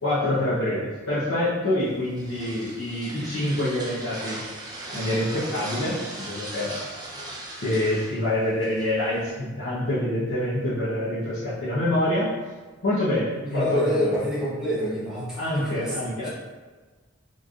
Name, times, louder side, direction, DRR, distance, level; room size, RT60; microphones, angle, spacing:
voice 1, 0.0-4.4 4.9-6.8 7.6-12.3 12.8-14.1 15.4-16.3, left 1 dB, 85° left, -11 dB, 0.9 m, -26 dB
sound 1, 1.8-9.3, right 1 dB, 20° right, 0.6 m, -38 dB
voice 2, 13.4-16.0 16.2-16.3, equal, 5° right, -8 dB, 1.0 m, -26 dB
4.0 x 3.2 x 2.4 m, 1.4 s
head